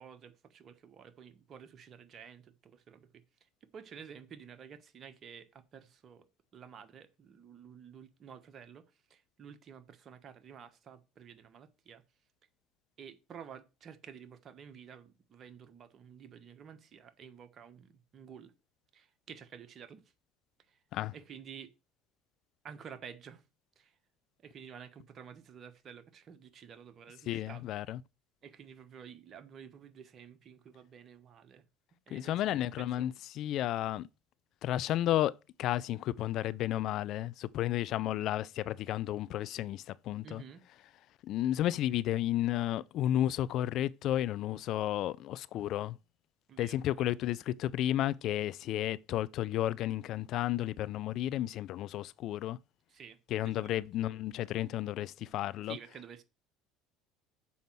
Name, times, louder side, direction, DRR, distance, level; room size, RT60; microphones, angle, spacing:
voice 1, 0.0-3.2 3.6-6.3 6.5-12.0 13.0-18.5 18.9-20.0 20.7-20.8 21.1-21.7 22.6-23.4 23.8-24.0 24.4-27.6 28.4-31.6 32.1-33.2 40.2-40.7 46.5-47.1 52.9-53.9 55.6-56.2, right 7 dB, 45° right, 1.3 m, -51 dB
voice 2, 27.3-28.0 32.1-34.1 34.6-40.4 41.2-46.0 46.6-52.6 53.3-55.8, left 13 dB, 55° left, 0.4 m, -32 dB
7.0 x 5.2 x 6.2 m
hypercardioid pair, 70°, 0 cm